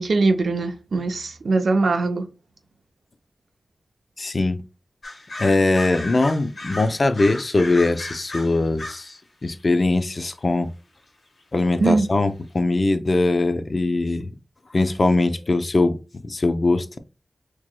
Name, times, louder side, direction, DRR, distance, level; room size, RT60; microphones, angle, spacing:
voice 1, 0.0-2.3 11.8-12.1, right 3 dB, 85° right, 0.5 m, -21 dB
voice 2, 4.2-4.6 5.4-10.7 11.5-14.3 14.7-16.0 16.2-17.0, left 2 dB, 50° left, 0.5 m, -21 dB
sound 1, 5.0-9.1 9.4-9.8 11.4-11.5 11.7-11.8 12.1-12.2, left 2 dB, 75° left, 1.3 m, -36 dB
4.5 x 3.0 x 2.2 m
wide cardioid pair, 65°, 0 cm